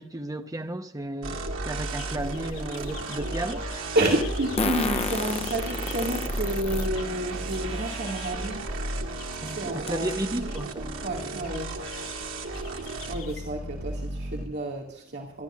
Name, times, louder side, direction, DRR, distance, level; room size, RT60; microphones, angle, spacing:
voice 1, 0.0-3.6 9.4-11.5, right 1 dB, 20° right, 1.0 m, -34 dB
sound 1, 1.2-14.5, right 2 dB, 75° right, 2.1 m, -33 dB
Fart, 1.8-1.9 4.6-6.9 7.5-7.6 8.9-9.0 9.3-9.4 9.9-10.1, left 4 dB, 30° left, 0.8 m, -30 dB
sound 2, 1.9-8.6 9.2-9.9 10.3-10.6 11.2-13.4, left 9 dB, 75° left, 5.3 m, -48 dB
voice 2, 3.9-8.6 9.4-10.5 11.0-11.7 13.1-15.4, right 1 dB, 55° right, 2.4 m, -30 dB
26.5 x 13.0 x 2.5 m
head